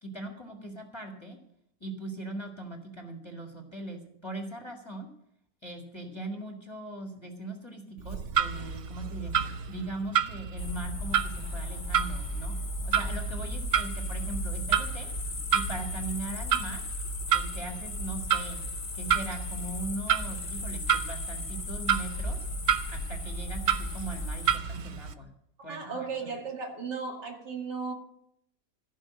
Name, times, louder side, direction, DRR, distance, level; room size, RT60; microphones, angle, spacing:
voice 1, 0.0-1.4 1.8-5.1 5.6-9.3 9.7-12.6 12.9-15.1 15.5-16.8 17.3-18.6 18.9-22.4 22.9-25.3 25.6-25.9 26.2-26.3, right 1 dB, 15° left, 1.7 m, -40 dB
Clock, 8.0-25.1, right 8 dB, 60° right, 0.7 m, -31 dB
sound 1, 10.6-24.6, left 1 dB, 30° left, 1.3 m, -36 dB
voice 2, 25.7-27.9, right 5 dB, 75° right, 2.9 m, -35 dB
15.5 x 5.5 x 8.6 m
omnidirectional pair, 1.8 m